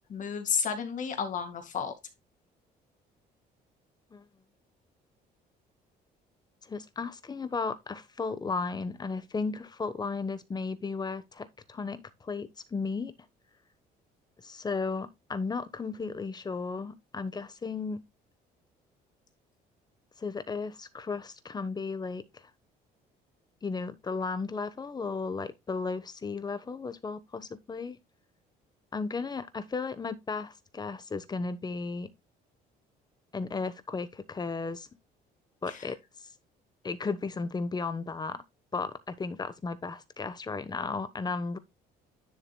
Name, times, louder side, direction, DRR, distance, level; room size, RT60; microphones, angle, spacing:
voice 1, 0.1-1.9 35.7-35.9, left 6 dB, 50° left, 2.1 m, -32 dB
voice 2, 6.6-13.1 14.4-18.0 20.2-22.4 23.6-28.0 28.9-32.1 33.3-34.9 35.6-36.0 36.8-38.4 38.7-41.6, left 4 dB, 25° left, 1.1 m, -34 dB
10.0 x 7.2 x 2.2 m
cardioid pair, 110°, 17 cm